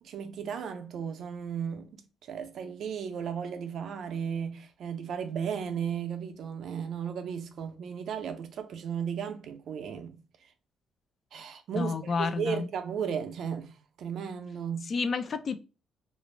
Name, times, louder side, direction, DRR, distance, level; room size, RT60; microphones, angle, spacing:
voice 1, 0.0-10.2 11.3-14.9, right 7 dB, 70° right, 0.5 m, -35 dB
voice 2, 11.7-12.7 14.9-15.6, left 4 dB, 50° left, 0.3 m, -30 dB
2.5 x 2.0 x 3.1 m
cardioid pair, 90°, 0 cm